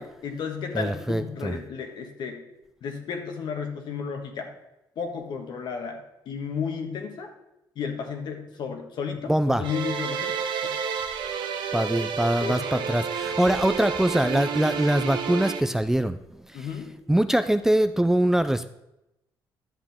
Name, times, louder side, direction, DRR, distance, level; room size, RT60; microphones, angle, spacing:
voice 1, 0.0-2.4 2.8-4.5 4.9-7.3 7.7-10.4 10.6-10.8 12.0-12.1 12.4-13.1 16.5-17.0, left 6 dB, 70° left, 4 dB, 1.4 m, -33 dB
voice 2, 0.7-1.6 9.3-9.6 11.7-16.2 16.5-16.7 17.1-18.7, right 1 dB, 5° right, 10 dB, 0.4 m, -23 dB
sound 1, 9.6-15.6, right 7 dB, 80° right, 0.9 m, -30 dB
11.0 x 7.4 x 3.6 m, 0.89 s
cardioid pair, 115°, 8 cm